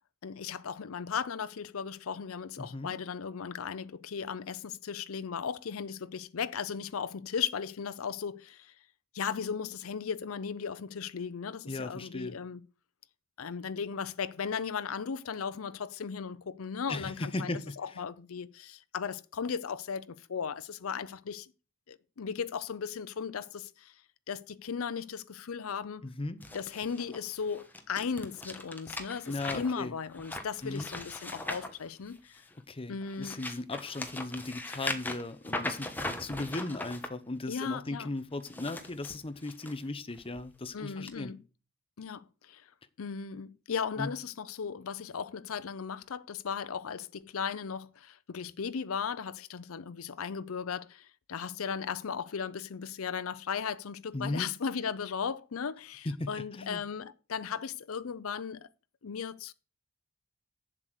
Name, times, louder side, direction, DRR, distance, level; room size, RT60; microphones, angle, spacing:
voice 1, 0.2-8.7 9.1-12.6 13.4-21.5 21.9-23.9 24.3-26.1 26.5-32.4 32.9-33.4 37.5-38.1 40.7-41.4 42.0-42.7 43.0-58.7 59.0-59.5, left 6 dB, 75° left, 0.6 m, -36 dB
voice 2, 2.6-2.9 11.7-12.4 16.9-18.0 26.0-26.4 29.3-29.9 30.6-30.9 32.7-41.3 44.0-44.1 54.1-54.5 56.0-56.8, left 2 dB, 25° left, 0.7 m, -37 dB
sound 1, 26.4-32.5 33.0-37.1 38.3-39.7 40.2-40.4 41.1-41.2, left 2 dB, 10° left, 1.1 m, -40 dB
7.8 x 7.5 x 6.6 m
head